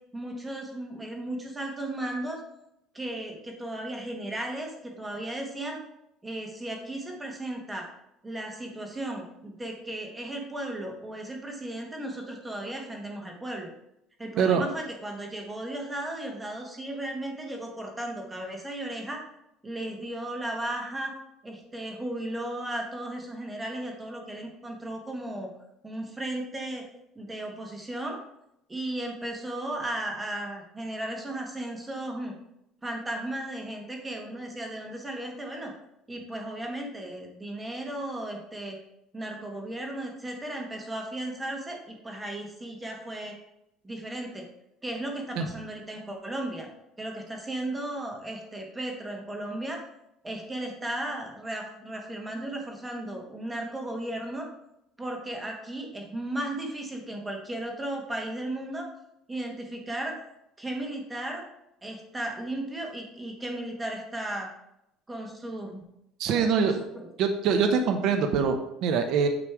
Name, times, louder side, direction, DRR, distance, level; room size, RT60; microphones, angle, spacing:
voice 1, 0.1-2.4 2.9-5.8 6.2-7.9 8.2-13.7 14.2-19.2 19.6-21.1 21.4-25.5 25.8-26.8 27.1-28.2 28.7-32.3 32.8-35.7 36.1-38.8 39.1-43.4 43.8-44.4 44.8-46.7 47.0-49.8 50.2-54.5 55.0-58.9 59.3-60.2 60.6-61.4 61.8-64.5 65.1-65.8 66.3-67.1, right 1 dB, 10° right, 1 dB, 1.4 m, -35 dB
voice 2, 66.2-66.8 67.2-69.3, right 6 dB, 60° right, 6 dB, 0.8 m, -24 dB
8.8 x 3.3 x 4.7 m, 0.81 s
cardioid pair, 145°, 0 cm